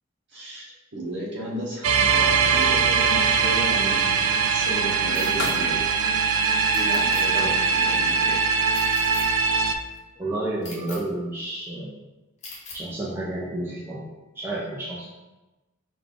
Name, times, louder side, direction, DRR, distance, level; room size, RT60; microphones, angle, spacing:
voice 1, 0.3-5.8 6.7-8.4, right 1 dB, 55° right, -3 dB, 1.1 m, -34 dB
sound 1, 1.1-3.5 4.4-4.7 5.3-6.4 6.7-7.0 7.5-8.3 8.7-10.0, left 3 dB, 60° left, 0.6 m, -40 dB
sound 2, 1.8-9.7, right 5 dB, 75° right, 0.4 m, -21 dB
sound 3, 5.2-5.5 6.7-7.2 8.7-9.3 10.6-11.0 12.4-12.8, left 3 dB, 35° left, 0.8 m, -40 dB
voice 2, 10.2-12.0 12.7-14.1 14.4-15.0, right 2 dB, 10° right, -7 dB, 0.6 m, -30 dB
5.0 x 2.4 x 3.8 m, 1.1 s
head